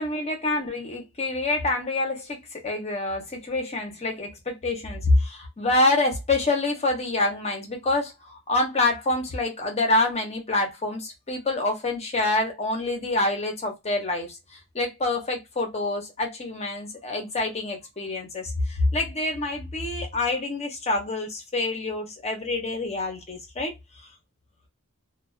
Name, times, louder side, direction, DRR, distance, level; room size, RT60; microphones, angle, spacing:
voice 1, 0.0-14.4 14.7-23.7, left 2 dB, 30° left, 0.8 m, -26 dB
2.3 x 2.3 x 2.3 m
head